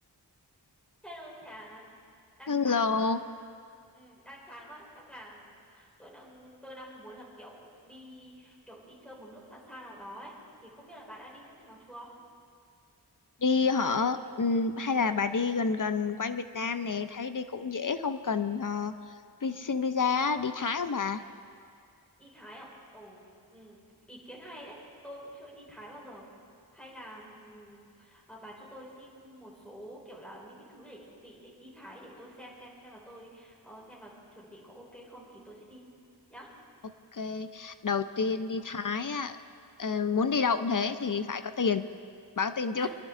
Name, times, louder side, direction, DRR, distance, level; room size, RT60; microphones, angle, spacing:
voice 1, 1.0-1.8 2.4-3.2 3.9-10.3 10.6-12.1 22.2-22.7 22.9-23.8 24.1-24.8 25.0-26.3 26.7-35.9 36.3-36.5 38.2-38.5 42.8-42.9, equal, 5° left, -5 dB, 4.0 m, -48 dB
voice 2, 2.5-3.2 13.4-18.9 19.4-21.2 37.1-39.4 39.8-41.8 42.4-42.9, left 5 dB, 50° left, 10 dB, 0.6 m, -29 dB
23.0 x 11.5 x 3.7 m, 2.3 s
wide cardioid pair, 60°, 41 cm